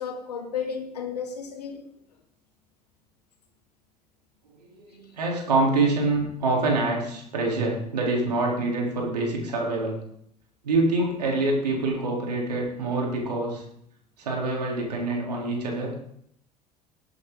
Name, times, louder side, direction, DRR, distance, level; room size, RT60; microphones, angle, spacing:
voice 1, 0.0-1.8, left 6 dB, 80° left, 4 dB, 2.1 m, -33 dB
voice 2, 4.6-10.0 10.6-13.6 14.2-15.9, right 2 dB, 80° right, -2 dB, 3.7 m, -25 dB
19.5 x 8.1 x 3.9 m, 0.70 s
figure-of-eight pair, 65°, 20 cm